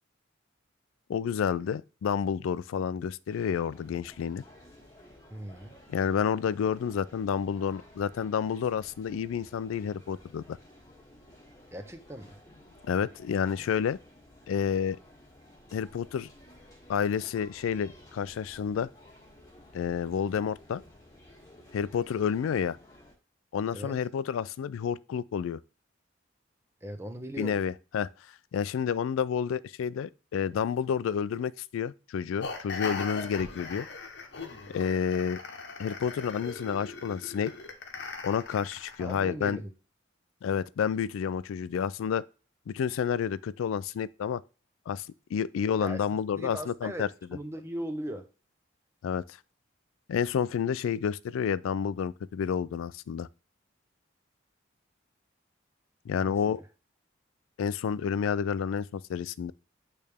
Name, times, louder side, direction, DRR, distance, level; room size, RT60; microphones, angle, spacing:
voice 1, 1.1-4.4 5.9-10.6 12.9-14.0 14.5-15.0 15.7-16.3 16.9-18.9 19.7-20.8 21.7-22.8 23.5-25.6 27.4-28.1 28.5-33.9 34.7-35.4 35.8-37.5 38.2-39.6 40.4-42.2 42.7-44.4 44.9-47.1 49.0-49.2 50.1-53.3 56.1-56.6 57.6-59.5, left 7 dB, 90° left, 0.3 m, -30 dB
sound 1, 3.3-23.1, left 1 dB, 15° left, 1.6 m, -55 dB
voice 2, 5.3-5.7 11.7-12.4 23.7-24.0 26.8-27.6 39.0-39.7 45.8-48.3 56.2-56.7, right 1 dB, 15° right, 0.7 m, -39 dB
sound 2, 32.4-39.2, left 4 dB, 60° left, 0.9 m, -39 dB
8.5 x 3.3 x 3.4 m
head